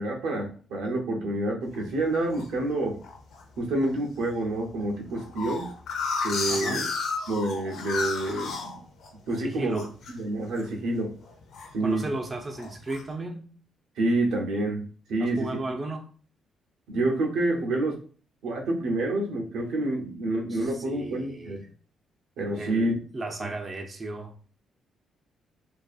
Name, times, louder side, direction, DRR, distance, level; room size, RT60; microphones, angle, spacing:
voice 1, 0.0-3.0 3.6-5.7 6.2-6.9 7.3-8.8 9.3-9.8 10.1-11.1 11.7-12.1 14.0-15.5 16.9-18.0 18.4-21.7 22.4-23.0 23.4-23.5, right 2 dB, 80° right, 1 dB, 0.6 m, -28 dB
sound 1, 1.7-2.5 3.0-3.4 3.8-3.9 4.2-4.3 4.6-9.4 9.7-10.1 10.5-10.8 11.1-12.1 12.5-13.0, left 4 dB, 75° left, 0.6 m, -32 dB
voice 2, 6.5-6.8 9.4-9.9 11.8-13.5 15.2-16.0 20.5-21.7 22.5-24.3, right 2 dB, 30° right, 2 dB, 0.4 m, -35 dB
2.5 x 2.3 x 2.3 m, 0.41 s
cardioid pair, 90°, 0 cm